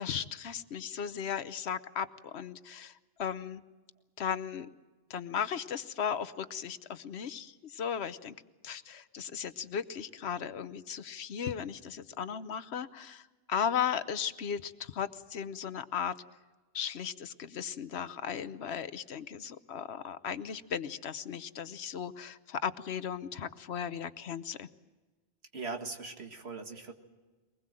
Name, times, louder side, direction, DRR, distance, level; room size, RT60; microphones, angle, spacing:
voice 1, 0.0-3.6 4.2-4.7 5.1-8.3 8.6-16.1 16.7-24.7, left 7 dB, 80° left, 13 dB, 1.1 m, -36 dB
voice 2, 25.5-26.9, right 4 dB, 75° right, 4 dB, 2.2 m, -40 dB
23.0 x 20.0 x 7.6 m, 1.3 s
omnidirectional pair, 1.1 m